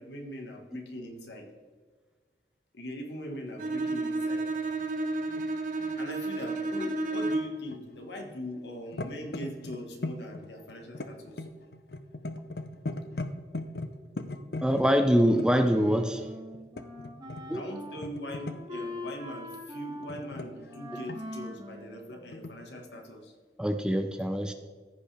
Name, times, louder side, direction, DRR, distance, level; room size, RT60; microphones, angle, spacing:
voice 1, 0.0-1.5 2.7-4.5 6.0-11.5 17.5-23.3, left 1 dB, 80° left, 2 dB, 1.6 m, -41 dB
Bowed string instrument, 3.6-7.7, right 2 dB, 45° right, 0.7 m, -31 dB
sound 1, 3.8-4.0 4.5-6.9 7.2-8.4 8.7-15.5 16.5-17.6 18.0-18.8 19.9-21.4 22.3-22.5, left 2 dB, 65° left, 0.6 m, -39 dB
voice 2, 14.6-16.3 17.5-17.6 23.6-24.5, equal, 5° right, 7 dB, 0.4 m, -24 dB
Wind instrument woodwind instrument, 15.2-22.7, left 1 dB, 25° right, 1.7 m, -43 dB
14.5 x 5.4 x 3.4 m, 1.5 s
head